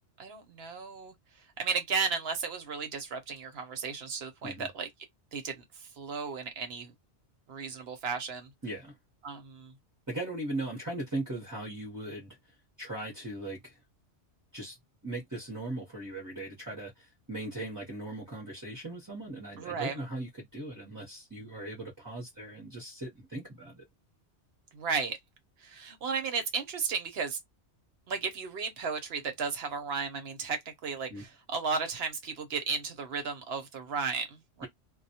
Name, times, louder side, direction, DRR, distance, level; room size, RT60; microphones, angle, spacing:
voice 1, 0.2-1.1 1.6-4.9 5.3-6.9 7.5-8.5 9.2-9.7 19.6-20.0 24.7-25.2 25.6-27.4 28.1-34.7, right 5 dB, 65° right, 0.9 m, -34 dB
voice 2, 8.6-8.9 10.1-12.4 12.8-13.8 14.5-14.8 15.0-23.8 31.1-31.2, right 2 dB, 20° right, 0.7 m, -39 dB
2.1 x 2.1 x 2.7 m
omnidirectional pair, 1.2 m